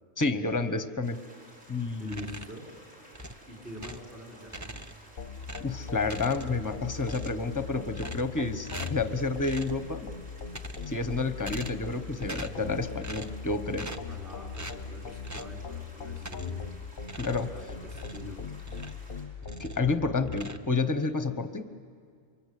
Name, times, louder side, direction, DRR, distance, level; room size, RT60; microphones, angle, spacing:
voice 1, 0.2-1.2 1.7-2.3 5.6-10.1 10.9-13.9 17.2-17.5 19.6-21.7, left 3 dB, 15° left, 9 dB, 0.9 m, -30 dB
sound 1, 1.0-19.2, equal, 60° right, 5.6 m, -54 dB
sound 2, 2.0-2.7 3.1-4.1 4.5-5.1 5.4-6.7 7.0-7.5 7.9-8.4 8.7-9.1 9.4-9.8 10.4-11.0 11.4-11.9 12.2-12.7 13.0-13.4 13.7-14.2 14.5-14.8 15.2-15.6 16.2-16.7 17.0-19.1 19.4-19.9 20.3-21.1, right 1 dB, 20° right, 0.6 m, -42 dB
voice 2, 2.0-2.7 3.5-4.8 14.0-16.7 17.5-18.4, equal, 35° right, -2 dB, 4.8 m, -46 dB
sound 3, 5.2-20.4, left 6 dB, 45° left, 0.9 m, -40 dB
28.0 x 24.0 x 8.4 m, 2.1 s
omnidirectional pair, 1.4 m